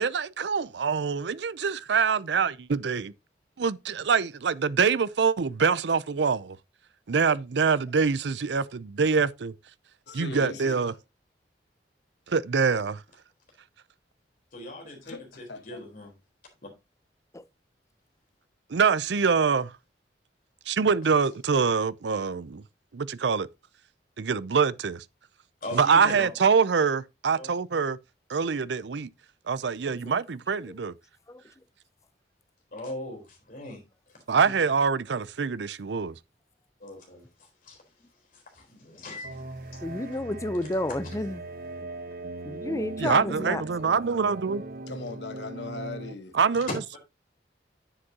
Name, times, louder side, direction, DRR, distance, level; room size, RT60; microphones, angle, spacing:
voice 1, 0.0-3.1 3.6-6.6 7.1-9.5 10.1-10.9 12.3-13.0 18.7-19.7 20.7-22.6 22.9-23.5 24.2-25.0 25.7-28.0 28.3-29.1 29.5-30.9 34.3-36.1 43.0-44.6 46.3-46.7, right 5 dB, 70° right, 0.5 m, -25 dB
voice 2, 10.1-11.0 15.0-15.8 44.9-46.4, left 3 dB, 75° left, 1.2 m, -39 dB
voice 3, 14.5-16.1 25.6-26.3 27.3-27.5 32.7-33.8 36.8-37.8 38.3-39.4 39.7-39.8 46.7-47.0, left 1 dB, 50° left, 4.0 m, -39 dB
voice 4, 29.9-30.2 30.7-30.8 31.3-31.4 39.8-41.4 42.5-43.6, left 1 dB, 15° left, 0.6 m, -31 dB
sound 1, 39.2-46.1, right 2 dB, 55° right, 1.1 m, -39 dB
9.9 x 7.8 x 2.8 m
head